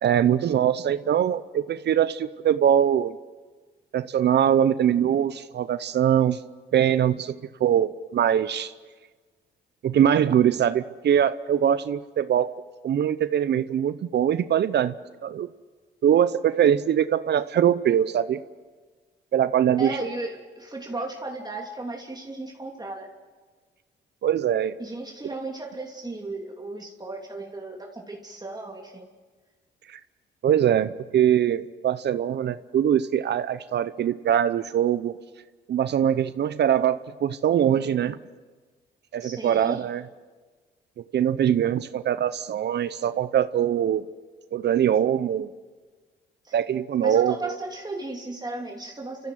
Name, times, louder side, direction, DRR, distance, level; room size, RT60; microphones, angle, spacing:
voice 1, 0.0-3.2 3.9-6.4 6.7-8.7 9.8-12.5 12.8-14.9 15.2-15.5 16.0-18.4 19.3-20.0 24.2-24.8 29.9-30.0 30.4-35.1 35.7-38.2 39.1-40.0 41.1-44.1 44.5-45.5 46.5-47.5, right 9 dB, 65° right, 14 dB, 0.7 m, -22 dB
voice 2, 19.8-23.1 24.8-29.0 39.2-39.9 46.4-46.5 47.0-49.3, right 2 dB, 20° right, 0 dB, 3.0 m, -35 dB
29.5 x 15.0 x 7.7 m, 1.4 s
supercardioid pair, 65°, 19 cm